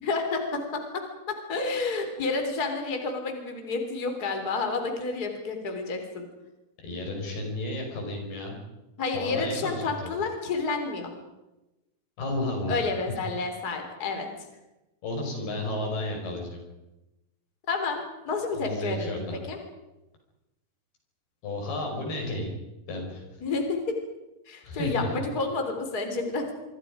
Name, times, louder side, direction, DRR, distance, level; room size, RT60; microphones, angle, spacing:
voice 1, 0.0-1.0 1.3-6.3 9.0-11.1 12.7-14.3 17.7-19.1 19.5-19.6 23.4-24.0 24.5-26.5, left 3 dB, 25° left, 4 dB, 3.6 m, -30 dB
voice 2, 6.8-8.6 9.1-10.2 12.2-13.2 15.0-16.6 18.5-19.4 21.4-22.5 22.9-23.4 24.6-25.2, left 1 dB, 85° left, 1 dB, 7.7 m, -32 dB
25.5 x 25.5 x 5.1 m, 0.99 s
omnidirectional pair, 4.4 m